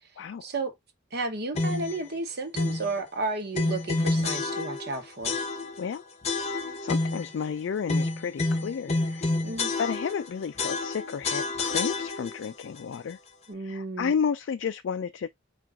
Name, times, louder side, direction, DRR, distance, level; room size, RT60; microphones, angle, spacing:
voice 1, 0.4-0.7 1.1-5.4 9.4-9.7 13.5-14.1, right 3 dB, 55° right, 1.1 m, -32 dB
sound 1, 1.5-2.0 2.5-2.9 3.5-4.9 5.2-5.9 6.2-7.3 7.9-10.3 10.6-12.5, left 3 dB, 35° left, 0.7 m, -28 dB
voice 2, 6.8-9.4 9.8-13.2 13.6-15.3, left 6 dB, 65° left, 0.3 m, -32 dB
4.5 x 2.5 x 3.5 m
head